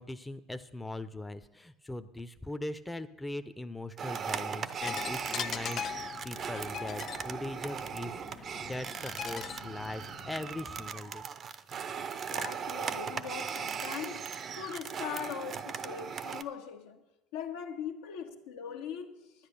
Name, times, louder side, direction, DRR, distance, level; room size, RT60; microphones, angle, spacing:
voice 1, 0.0-11.3, left 2 dB, 10° left, 0.7 m, -40 dB
sound 1, 4.0-16.4, right 7 dB, 45° right, 0.7 m, -38 dB
sound 2, 4.8-10.9, left 9 dB, 50° left, 0.3 m, -41 dB
voice 2, 12.0-14.2 14.5-17.0 17.3-19.3, left 8 dB, 80° left, 1.3 m, -41 dB
10.5 x 9.6 x 6.8 m
hypercardioid pair, 85°, 0 cm